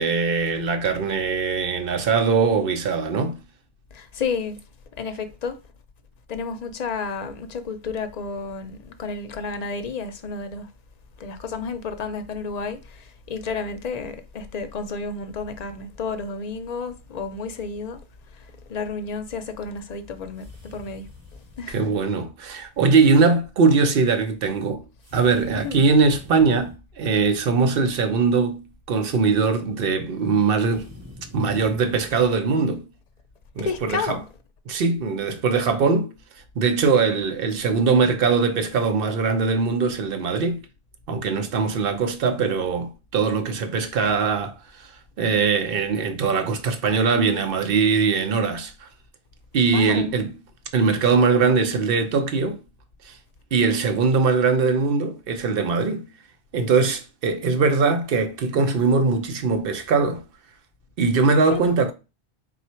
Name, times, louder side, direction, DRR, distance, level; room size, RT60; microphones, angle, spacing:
voice 1, 0.0-3.4 21.7-24.8 25.1-30.9 31.3-32.8 33.6-34.2 34.7-36.1 36.6-40.6 41.1-44.9 45.2-48.9 49.5-50.4 50.7-52.6 53.1-53.2 53.5-56.1 56.5-60.2 61.0-61.9, right 4 dB, 65° right, 0.9 m, -21 dB
voice 2, 3.9-4.6 5.0-5.5 6.3-10.7 11.2-18.0 18.7-21.0 21.6-21.8 25.6-25.8 33.6-34.2 49.7-50.2 61.5-61.7, left 4 dB, 50° left, 0.6 m, -31 dB
sound 1, 20.3-21.9 25.0-26.8 30.6-32.3, left 2 dB, 15° right, 0.7 m, -44 dB
3.9 x 2.4 x 4.2 m
omnidirectional pair, 1.0 m